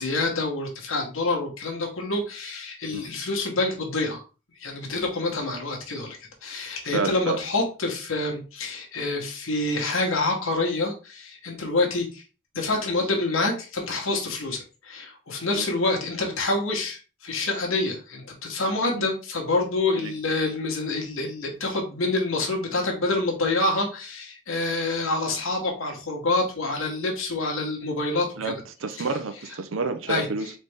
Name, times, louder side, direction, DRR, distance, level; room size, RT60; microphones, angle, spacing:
voice 1, 0.0-4.2 4.6-12.2 12.5-28.5 29.0-29.1 30.1-30.5, left 2 dB, 80° left, 1.2 m, -27 dB
voice 2, 6.9-7.4 15.5-15.7 19.0-19.1 20.0-20.1 28.4-30.5, right 4 dB, 75° right, 0.6 m, -29 dB
4.1 x 3.3 x 3.4 m
head